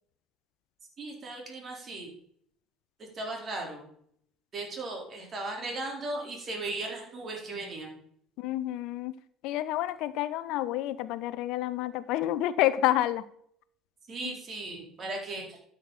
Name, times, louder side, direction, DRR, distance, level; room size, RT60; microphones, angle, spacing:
voice 1, 1.0-2.1 3.0-3.9 4.5-8.0 14.1-15.6, right 2 dB, 40° right, 1 dB, 4.0 m, -37 dB
voice 2, 8.4-9.1 9.4-13.3 14.2-14.3, left 14 dB, 60° left, 16 dB, 0.5 m, -29 dB
12.5 x 7.2 x 4.1 m, 0.67 s
hypercardioid pair, 60°, 0 cm